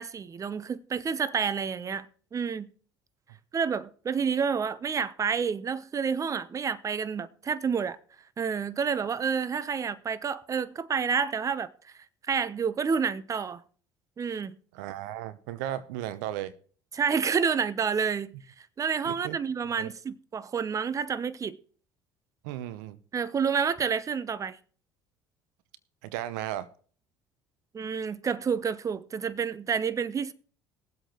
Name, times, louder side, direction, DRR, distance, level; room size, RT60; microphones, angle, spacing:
voice 1, 0.0-2.1 2.3-2.7 3.5-8.0 8.4-11.7 12.3-13.6 14.2-14.6 16.9-21.6 23.1-24.6 27.7-30.3, right 6 dB, 30° right, 0.7 m, -29 dB
voice 2, 14.7-16.5 19.1-19.4 19.8-19.9 22.4-23.0 26.0-26.7, right 12 dB, 75° right, 0.7 m, -35 dB
20.5 x 8.0 x 3.0 m
hypercardioid pair, 65°, 10 cm